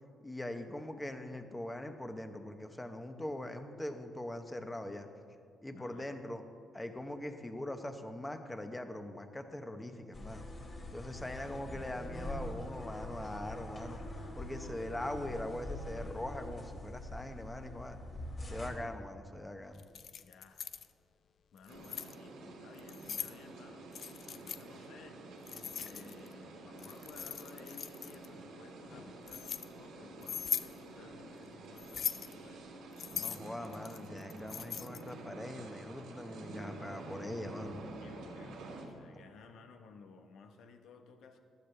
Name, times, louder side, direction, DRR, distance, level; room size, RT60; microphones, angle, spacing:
voice 1, 0.2-5.1 5.6-6.4 6.7-10.4 10.9-14.0 14.3-18.0 18.5-19.8 33.1-37.8, left 1 dB, 10° left, 7 dB, 1.0 m, -42 dB
voice 2, 5.8-6.1 11.2-11.9 20.2-20.6 21.5-23.9 24.3-32.7 38.0-41.4, left 5 dB, 75° left, 6 dB, 1.0 m, -56 dB
sound 1, 10.1-18.7, left 1 dB, 40° left, 2.5 m, -44 dB
Keys jangling, 19.8-20.9 21.6-22.1 22.8-23.3 23.9-24.6 25.5-26.3 26.8-28.3 28.9-29.6 30.2-30.7 31.8-32.3 33.0-35.1, left 7 dB, 60° left, 0.5 m, -40 dB
sound 2, 21.7-38.8, right 2 dB, 85° right, 2.2 m, -49 dB
15.0 x 11.5 x 3.4 m, 2.4 s
cardioid pair, 90°, 0 cm